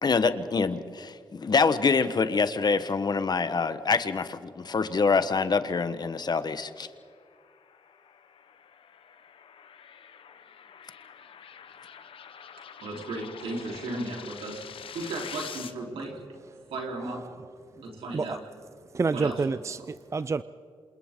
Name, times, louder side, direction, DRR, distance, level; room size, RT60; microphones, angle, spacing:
voice 1, 0.0-6.9, left 4 dB, 50° left, 1.1 m, -25 dB
sound 1, 6.8-15.7, left 7 dB, 75° left, 1.0 m, -46 dB
voice 2, 12.8-16.2 16.7-17.3 17.8-18.4 19.1-19.3, right 2 dB, 85° right, 3.8 m, -35 dB
voice 3, 17.0-17.5 17.7-17.8 18.1-18.4 18.9-20.4, right 4 dB, 30° right, 0.5 m, -29 dB
27.5 x 27.5 x 3.8 m
cardioid pair, 60°, 9 cm